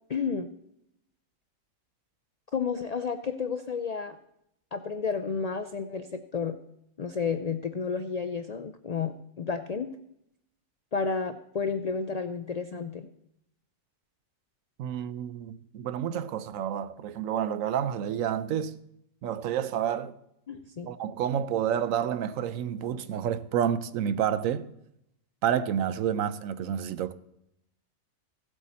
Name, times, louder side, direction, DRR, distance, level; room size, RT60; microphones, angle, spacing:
voice 1, 0.1-0.5 2.5-4.2 4.7-6.6 7.0-9.9 10.9-13.1 20.5-20.9, left 5 dB, 65° left, 0.3 m, -31 dB
voice 2, 14.8-18.8 19.2-20.2 20.9-24.7 25.4-27.1, right 9 dB, 80° right, 1.0 m, -29 dB
16.0 x 8.2 x 4.2 m
omnidirectional pair, 1.4 m